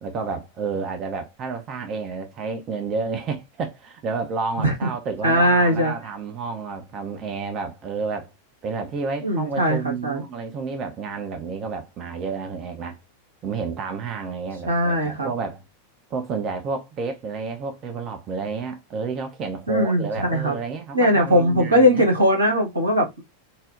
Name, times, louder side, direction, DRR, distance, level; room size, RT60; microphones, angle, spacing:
voice 1, 0.0-8.3 8.6-13.0 13.4-15.6 16.1-22.0, right 4 dB, 30° right, 0.5 m, -30 dB
voice 2, 5.2-5.9 9.2-10.2 14.7-15.3 19.7-20.6 20.9-23.2, equal, 80° right, 1.4 m, -20 dB
4.0 x 2.0 x 2.4 m
figure-of-eight pair, 90°, 0 cm